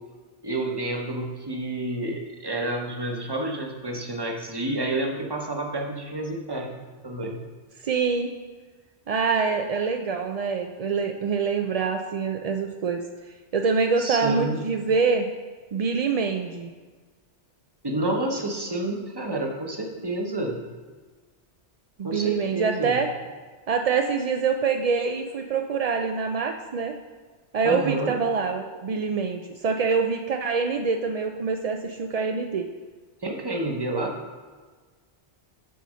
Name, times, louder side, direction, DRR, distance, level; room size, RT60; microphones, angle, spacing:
voice 1, 0.4-7.4 14.0-14.6 17.8-20.6 22.0-23.0 27.6-28.1 33.2-34.1, right 1 dB, 20° right, 1 dB, 0.9 m, -29 dB
voice 2, 7.8-8.3 9.1-13.0 13.5-15.3 15.7-16.7 22.0-23.1 23.7-26.9 27.5-32.7, right 5 dB, 55° right, 4 dB, 0.4 m, -25 dB
9.2 x 4.2 x 6.3 m, 1.4 s
omnidirectional pair, 1.2 m